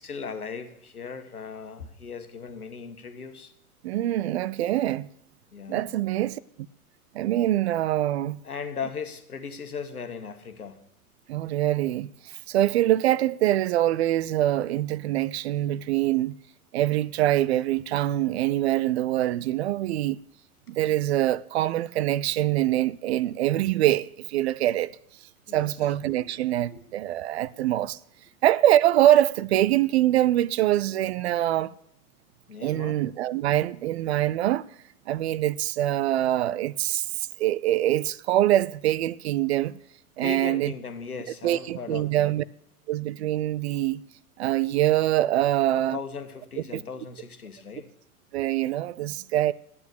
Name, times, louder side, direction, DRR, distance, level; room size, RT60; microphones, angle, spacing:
voice 1, 0.0-3.5 5.5-5.9 8.4-10.8 25.5-25.7 26.7-26.8 32.5-33.0 40.2-42.3 45.7-47.9, left 5 dB, 80° left, 1.5 m, -37 dB
voice 2, 3.8-5.1 5.7-6.4 7.1-8.4 11.3-16.4 16.7-20.2 20.7-24.9 25.5-28.0 28.4-31.7 32.6-34.6 35.1-39.8 40.2-40.7 41.4-42.4 42.9-44.0 44.4-46.0 46.7-46.8 48.3-49.5, right 13 dB, 50° right, 0.5 m, -24 dB
11.0 x 8.6 x 6.5 m
figure-of-eight pair, 95°, 44 cm